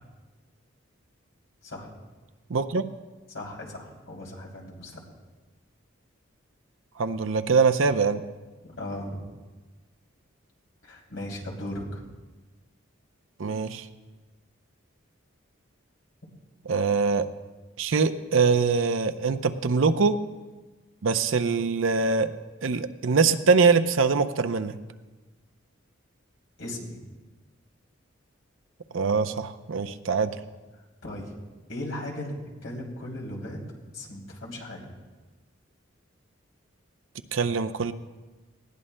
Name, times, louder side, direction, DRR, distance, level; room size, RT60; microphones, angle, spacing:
voice 1, 2.5-2.9 7.0-8.2 13.4-13.9 16.7-17.3 17.8-20.2 21.0-22.3 22.6-24.8 28.9-30.4 37.3-37.9, right 4 dB, 75° right, 11 dB, 0.6 m, -23 dB
voice 2, 3.3-5.0 8.6-9.3 10.8-12.0 26.6-27.0 31.0-31.3 31.7-32.3 32.6-33.6 33.9-34.9, left 1 dB, 75° left, -2 dB, 3.1 m, -37 dB
19.5 x 15.5 x 2.2 m, 1.2 s
head